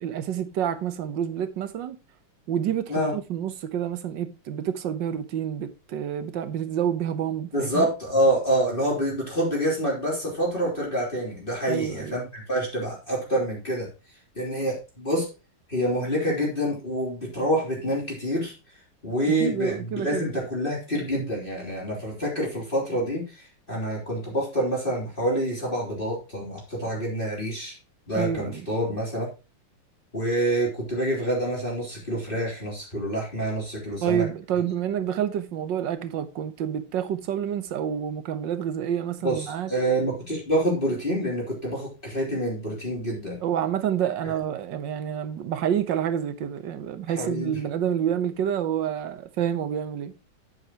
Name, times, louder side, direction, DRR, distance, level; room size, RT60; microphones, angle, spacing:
voice 1, 0.0-2.0 2.5-7.9 11.7-12.2 19.4-20.3 28.1-28.7 34.0-39.7 43.4-50.1, right 9 dB, 65° right, 1.7 m, -28 dB
voice 2, 7.5-13.9 14.4-15.3 15.7-18.5 19.0-27.8 28.1-29.3 30.1-34.2 39.2-43.4 44.2-44.3 47.2-47.6, right 1 dB, 25° left, 3.8 m, -27 dB
9.6 x 9.3 x 3.0 m
omnidirectional pair, 2.3 m